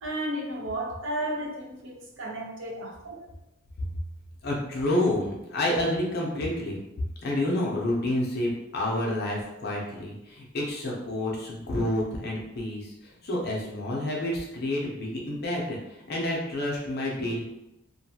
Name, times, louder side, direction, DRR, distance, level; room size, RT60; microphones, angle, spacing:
voice 1, 0.0-3.2, right 1 dB, 65° right, -1 dB, 0.6 m, -33 dB
voice 2, 4.4-6.8 7.2-17.4, left 1 dB, 50° left, -3 dB, 0.6 m, -29 dB
2.6 x 2.2 x 2.8 m, 0.90 s
head